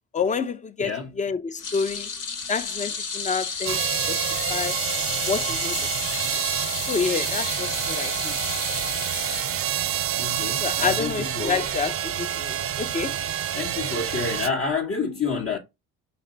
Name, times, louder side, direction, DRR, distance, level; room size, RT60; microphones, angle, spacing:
voice 1, 0.1-2.1 2.5-3.8 4.1-4.2 4.5-4.8 5.3-5.8 6.9-8.3 10.6-13.2, left 5 dB, 25° left, 0.5 m, -28 dB
voice 2, 0.8-1.1 10.2-11.7 13.5-15.6, left 4 dB, 45° left, 0.9 m, -29 dB
sound 1, 1.6-10.1 10.4-10.6 11.8-11.9, left 5 dB, 80° left, 1.3 m, -32 dB
sound 2, 3.7-14.5, right 10 dB, 45° right, 0.5 m, -28 dB
5.2 x 2.1 x 3.8 m
supercardioid pair, 80°, 32 cm